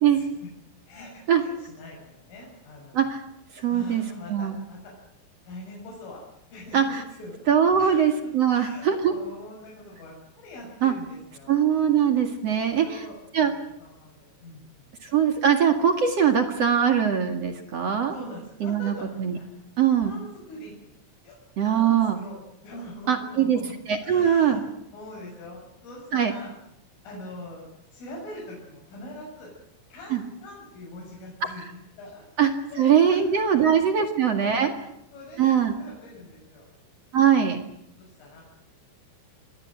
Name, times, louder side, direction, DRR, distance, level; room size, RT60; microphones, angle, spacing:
voice 1, 0.9-3.1 3.7-4.9 5.4-6.2 6.5-7.4 7.8-8.0 8.5-11.6 12.5-14.9 18.1-19.5 20.0-20.9 21.2-21.3 21.7-22.4 22.6-23.7 24.0-24.7 24.9-26.5 27.0-29.5 29.9-31.7 32.0-32.2 32.7-33.2 33.5-33.7 34.4-34.8 35.1-36.7 38.0-38.4, left 1 dB, 75° left, -4 dB, 9.4 m, -43 dB
voice 2, 3.5-4.0 4.3-4.5 6.7-7.0 7.5-9.1 10.8-10.9 11.5-13.0 13.3-13.5 15.0-18.1 18.6-19.4 19.8-20.1 21.6-22.2 23.1-23.6 23.9-24.6 26.1-26.3 30.1-30.2 32.4-32.5 32.8-34.7 35.4-35.7 37.1-37.6, right 8 dB, 50° right, 6 dB, 2.0 m, -21 dB
26.5 x 21.0 x 7.8 m, 0.80 s
omnidirectional pair, 5.8 m